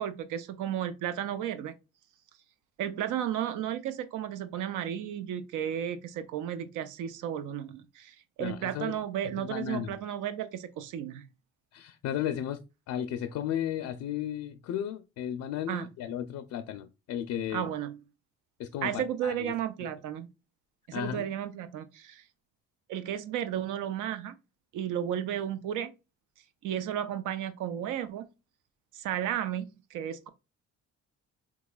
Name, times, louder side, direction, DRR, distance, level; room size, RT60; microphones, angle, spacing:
voice 1, 0.0-1.8 2.8-11.2 15.7-15.9 17.5-18.0 18.8-20.3 20.9-22.2 22.9-24.3 24.7-25.9 26.6-28.3 28.9-29.6 29.9-30.3, right 10 dB, 85° right, 0.6 m, -33 dB
voice 2, 8.4-8.9 9.2-9.9 11.7-12.6 12.9-17.7 18.6-19.5 19.8-19.9 20.9-21.2, left 10 dB, 70° left, 0.4 m, -34 dB
3.6 x 3.0 x 2.2 m
cardioid pair, 90°, 30 cm